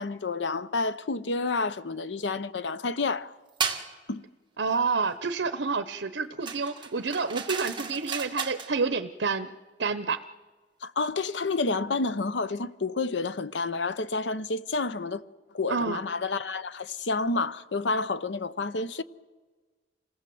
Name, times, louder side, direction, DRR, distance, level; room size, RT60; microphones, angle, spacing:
voice 1, 0.0-3.3 4.1-4.2 10.8-15.2 15.5-19.0, left 3 dB, 85° left, 0.8 m, -29 dB
sound 1, 3.6-3.9 6.5-8.7, right 6 dB, 25° right, 1.8 m, -33 dB
voice 2, 4.6-9.5 9.8-10.2 15.7-16.0, right 4 dB, 80° right, 0.8 m, -28 dB
27.0 x 18.0 x 7.8 m
head